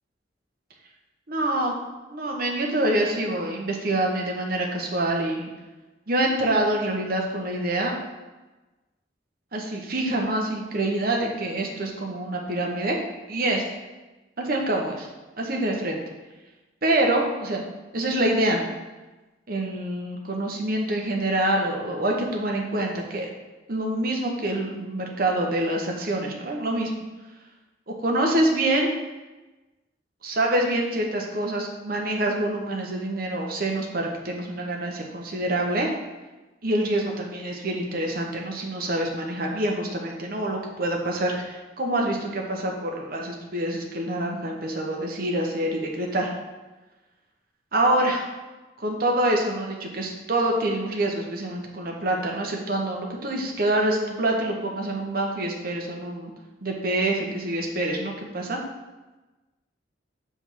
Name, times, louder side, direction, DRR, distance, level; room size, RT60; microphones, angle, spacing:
voice 1, 1.3-1.7 2.1-5.5 6.1-7.9 9.5-13.0 13.3-13.6 14.4-15.1 15.4-16.0 16.8-17.6 17.9-18.6 19.5-23.3 23.7-26.9 27.9-28.9 30.2-35.9 36.6-46.3 47.7-48.2 48.8-56.3 56.6-58.6, right 1 dB, 50° right, 0 dB, 1.0 m, -26 dB
6.9 x 3.5 x 4.6 m, 1.1 s
head